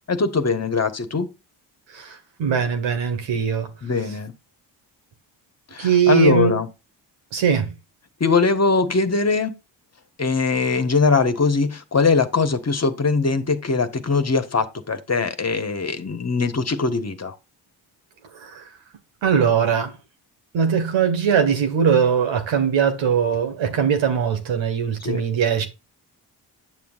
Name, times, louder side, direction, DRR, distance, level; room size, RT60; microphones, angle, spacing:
voice 1, 0.1-1.3 3.8-4.3 5.7-6.7 8.2-9.5 10.2-17.3 25.0-25.2, left 4 dB, 35° left, 1.5 m, -21 dB
voice 2, 1.9-3.7 5.8-6.6 7.3-7.7 18.4-18.6 19.2-20.0 20.5-25.7, right 7 dB, 85° right, 2.1 m, -20 dB
9.3 x 7.1 x 2.6 m
cardioid pair, 70°, 44 cm